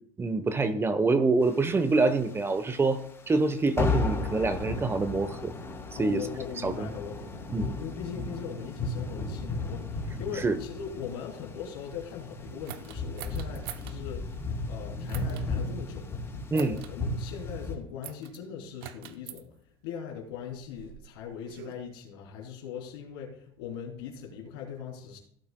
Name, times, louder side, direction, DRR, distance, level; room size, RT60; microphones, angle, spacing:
voice 1, 0.2-5.5 6.0-6.2 6.6-6.9 7.5-7.7 10.4-10.6 16.5-16.8, right 3 dB, 20° right, 11 dB, 0.9 m, -26 dB
sound 1, 1.6-2.5 2.8-3.0 3.3-3.5 3.8-17.7, left 3 dB, 20° left, 3.6 m, -34 dB
voice 2, 5.9-16.1 16.5-19.5 19.8-25.2, left 7 dB, 80° left, -1 dB, 3.4 m, -40 dB
sound 2, 12.7-14.0 15.1-15.5 16.5-16.9 18.0-18.4 18.8-19.4 20.3-21.7, right 12 dB, 80° right, 0.8 m, -44 dB
17.0 x 8.4 x 2.2 m, 0.66 s
supercardioid pair, 95°, 12 cm